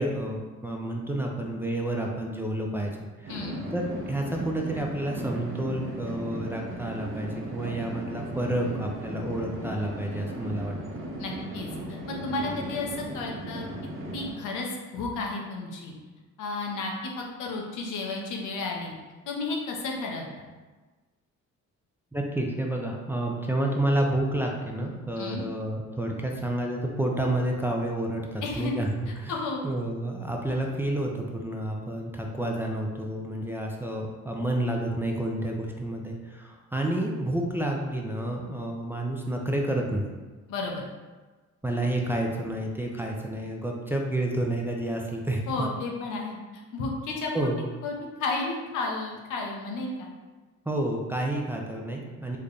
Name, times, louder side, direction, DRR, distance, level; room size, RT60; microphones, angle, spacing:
voice 1, 0.0-2.9 3.2-3.3 3.7-11.0 22.1-29.3 29.6-40.1 41.6-45.4 47.3-47.6 50.7-52.4, right 1 dB, 10° right, -1 dB, 0.4 m, -30 dB
sound 1, 3.2-14.3, right 1 dB, 45° right, 0.7 m, -37 dB
voice 2, 3.3-3.6 11.2-13.6 14.1-15.9 16.4-18.9 19.3-20.5 25.2-25.4 28.4-28.7 29.3-29.7 40.5-40.8 45.5-46.4 46.7-47.5 47.8-50.1, left 3 dB, 80° left, 0 dB, 0.7 m, -32 dB
3.3 x 2.1 x 3.8 m, 1.3 s
cardioid pair, 90°, 30 cm